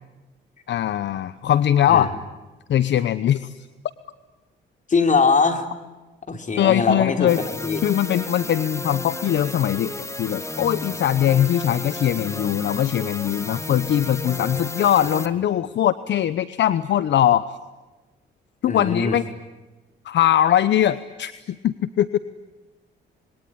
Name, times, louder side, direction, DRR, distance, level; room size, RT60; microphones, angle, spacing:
voice 1, 0.7-2.1 2.7-3.7 6.6-7.4 7.8-17.4 18.6-19.2 20.0-22.2, left 11 dB, 65° left, 15 dB, 0.9 m, -21 dB
voice 2, 4.9-5.7 6.3-7.8 18.7-19.2, left 4 dB, 40° left, 7 dB, 3.5 m, -21 dB
sound 1, 7.3-15.3, left 2 dB, 15° left, 1.9 m, -32 dB
27.0 x 22.5 x 9.9 m, 1.2 s
cardioid pair, 90°, 20 cm